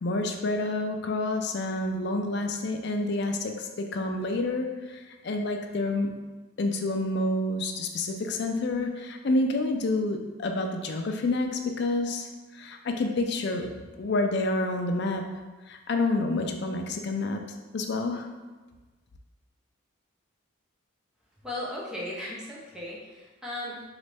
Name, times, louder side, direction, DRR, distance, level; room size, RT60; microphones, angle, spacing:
voice 1, 0.0-6.2 6.6-15.3 15.7-17.4 17.7-18.3, left 2 dB, 55° left, 4 dB, 0.4 m, -28 dB
voice 2, 21.4-23.8, left 1 dB, 5° right, -5 dB, 0.7 m, -36 dB
3.9 x 3.1 x 3.4 m, 1.3 s
head